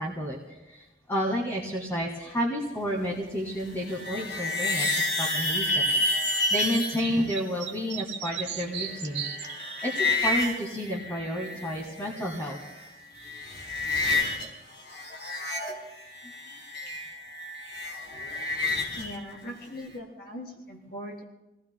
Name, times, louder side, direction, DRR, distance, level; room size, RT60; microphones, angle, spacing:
voice 1, 0.0-9.2 9.8-12.6, equal, 15° left, -2 dB, 1.7 m, -31 dB
sound 1, 3.6-7.0 8.4-11.8 12.0-12.9 13.1-14.5 14.7-19.2, left 2 dB, 75° left, 4.2 m, -30 dB
sound 2, 7.0-10.1, right 9 dB, 75° right, 1.2 m, -36 dB
voice 2, 19.0-21.2, left 1 dB, 55° left, 0 dB, 3.6 m, -40 dB
29.5 x 18.5 x 2.2 m, 1.0 s
head